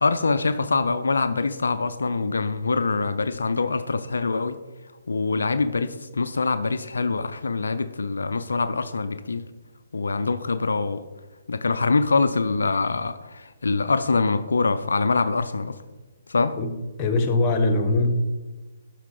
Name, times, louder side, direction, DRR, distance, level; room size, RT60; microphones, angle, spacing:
voice 1, 0.0-4.6 5.1-9.4 9.9-11.0 11.5-15.8 16.3-16.6, left 4 dB, 70° left, 0.4 m, -24 dB
voice 2, 16.6-18.2, left 2 dB, 25° left, 1.0 m, -22 dB
12.0 x 4.6 x 3.8 m
figure-of-eight pair, 130°, 0 cm